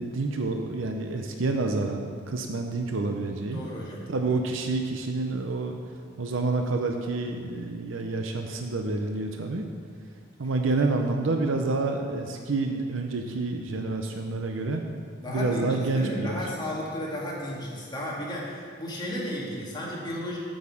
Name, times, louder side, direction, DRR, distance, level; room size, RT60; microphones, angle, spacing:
voice 1, 0.0-3.6 4.1-5.8 6.2-9.6 10.4-14.8 15.3-16.4, right 3 dB, 80° right, 4 dB, 0.7 m, -28 dB
voice 2, 3.5-4.0 15.2-20.4, equal, 20° left, -5 dB, 2.1 m, -33 dB
8.5 x 6.4 x 7.1 m, 2.1 s
head